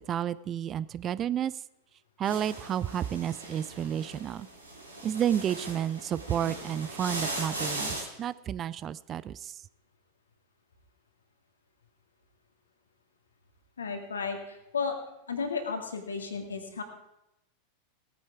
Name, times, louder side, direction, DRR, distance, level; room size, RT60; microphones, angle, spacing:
voice 1, 0.1-1.5 2.2-4.5 5.0-9.5, right 10 dB, 30° right, 18 dB, 0.4 m, -31 dB
sound 1, 2.2-8.0, right 2 dB, 90° right, 3.1 m, -38 dB
voice 2, 13.8-15.0 15.3-16.8, left 5 dB, 80° left, 5 dB, 2.1 m, -33 dB
17.5 x 9.4 x 4.8 m, 0.88 s
figure-of-eight pair, 90°, 0 cm